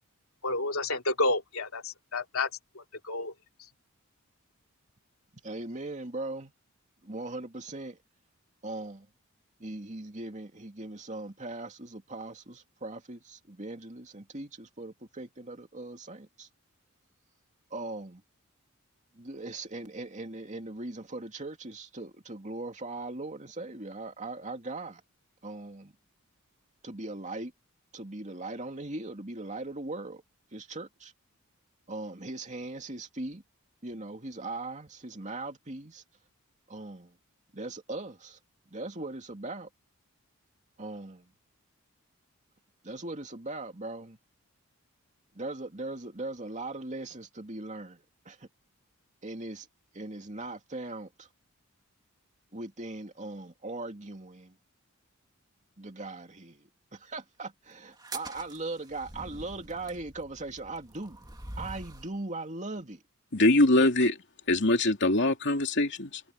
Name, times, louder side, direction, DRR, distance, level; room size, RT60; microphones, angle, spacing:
voice 1, 0.4-2.5 2.7-3.3, left 2 dB, 75° left, 3.1 m, -30 dB
voice 2, 5.4-6.5 7.0-8.0 8.6-9.1 9.6-16.5 17.7-18.2 19.1-25.0 25.4-25.9 26.8-27.5 27.9-30.2 30.5-31.1 31.9-33.4 33.8-36.0 36.7-37.2 37.5-38.4 38.7-39.7 40.8-41.3 42.8-44.2 45.3-48.5 49.2-49.7 49.9-51.3 52.5-54.6 55.8-61.2 61.6-63.0 63.8-63.9, right 2 dB, 35° right, 2.6 m, -39 dB
sound 1, 57.9-62.2, right 2 dB, 20° right, 2.0 m, -44 dB
voice 3, 63.3-64.1 64.5-66.2, left 2 dB, 55° left, 3.0 m, -23 dB
head